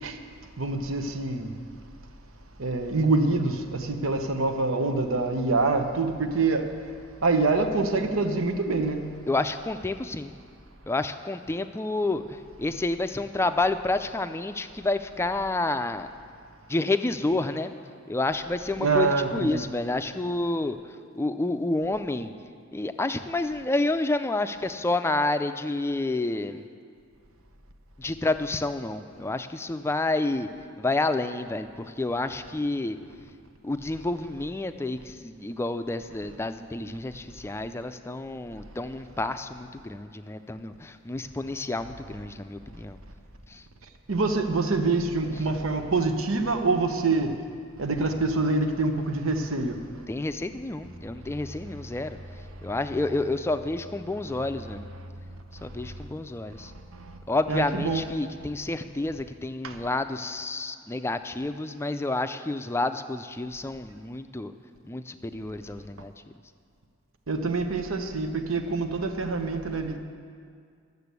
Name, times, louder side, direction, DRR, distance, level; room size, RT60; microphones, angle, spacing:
voice 1, 0.6-1.5 2.6-6.7 7.2-9.0 18.8-19.6 44.1-47.3 47.8-49.8 56.6-57.2 57.5-58.1 59.6-59.8 67.3-70.0, right 3 dB, 90° right, 6 dB, 1.0 m, -26 dB
voice 2, 9.3-10.3 10.9-16.1 16.7-17.7 18.1-20.8 21.2-22.3 22.7-26.6 28.0-30.5 30.8-33.0 33.6-43.0 43.5-43.6 50.1-52.2 52.6-54.9 55.6-56.7 57.3-64.5 64.8-66.1, left 2 dB, 15° left, 9 dB, 0.4 m, -29 dB
12.0 x 6.8 x 8.2 m, 2.2 s
head